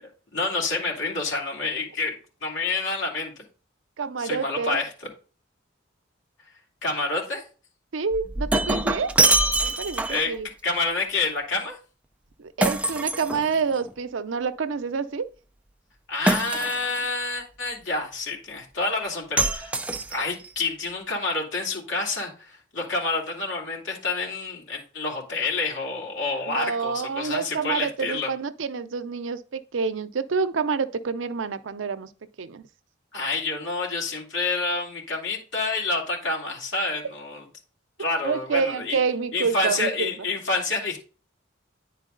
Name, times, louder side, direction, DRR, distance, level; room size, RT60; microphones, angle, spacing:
voice 1, 0.3-2.1 2.4-3.3 4.2-4.9 6.8-7.4 10.1-10.3 10.6-11.8 16.1-19.8 20.1-28.3 33.1-37.4 38.0-39.0 39.3-41.0, left 3 dB, 75° left, 2.7 m, -28 dB
voice 2, 4.0-4.8 7.9-9.1 9.6-10.5 12.4-15.3 26.5-32.1 32.4-32.6 38.2-40.3, right 5 dB, 75° right, 0.6 m, -28 dB
Shatter, 8.1-10.3 12.6-13.9 16.3-17.1 19.4-20.5, right 2 dB, 5° right, 0.4 m, -24 dB
9.9 x 4.5 x 3.8 m
head